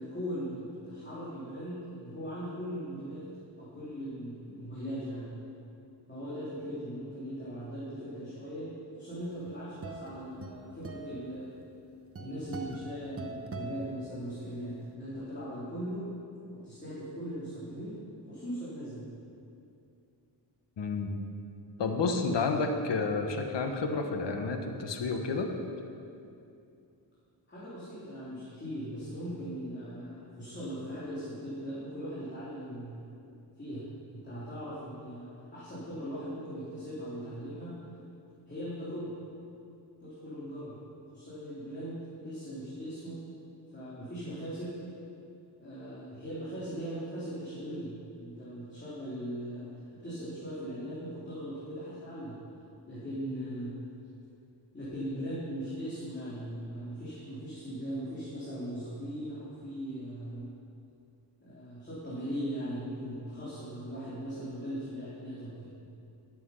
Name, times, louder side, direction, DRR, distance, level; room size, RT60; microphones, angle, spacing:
voice 1, 0.0-3.2 3.6-5.3 6.1-8.7 8.9-11.5 12.2-16.0 16.5-18.0 18.3-19.0 27.5-33.0 33.6-33.8 34.1-37.8 38.5-39.1 40.0-40.8 41.1-43.2 43.7-44.7 45.6-52.4 52.9-53.8 54.7-60.5 61.4-65.7, equal, 25° left, -11 dB, 3.2 m, -39 dB
sound 1, 9.2-14.7, right 3 dB, 30° right, 0.9 m, -44 dB
voice 2, 20.8-21.1 21.8-25.5, left 4 dB, 70° left, 4 dB, 1.3 m, -30 dB
12.5 x 7.7 x 5.6 m, 2.6 s
cardioid pair, 95°, 44 cm